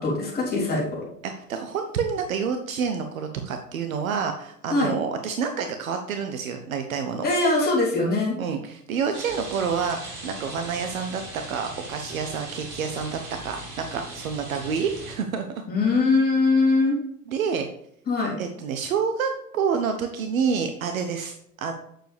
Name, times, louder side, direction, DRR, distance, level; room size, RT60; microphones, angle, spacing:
voice 1, 0.0-1.1 4.7-4.9 7.2-8.4 15.7-17.0 18.1-18.4, left 3 dB, 20° left, -5 dB, 3.6 m, -22 dB
voice 2, 1.2-7.2 8.4-15.5 17.3-17.7 18.4-21.7, right 6 dB, 60° right, 6 dB, 1.0 m, -28 dB
Rain, 9.1-15.1, right 2 dB, 40° right, 3.7 m, -39 dB
9.1 x 6.8 x 3.4 m, 0.74 s
figure-of-eight pair, 90°, 47 cm